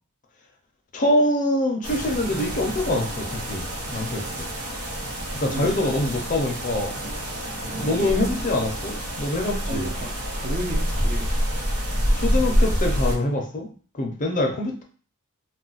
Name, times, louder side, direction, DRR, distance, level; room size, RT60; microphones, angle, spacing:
voice 1, 0.9-4.5 5.3-7.0 7.8-9.9 12.1-14.8, left 1 dB, 35° left, 2 dB, 0.6 m, -25 dB
sound 1, 1.8-13.2, equal, 75° right, 0.8 m, -27 dB
voice 2, 5.5-5.8 7.9-8.2 9.7-11.3, right 2 dB, 30° right, -1 dB, 0.4 m, -33 dB
2.3 x 2.2 x 3.8 m, 0.41 s
head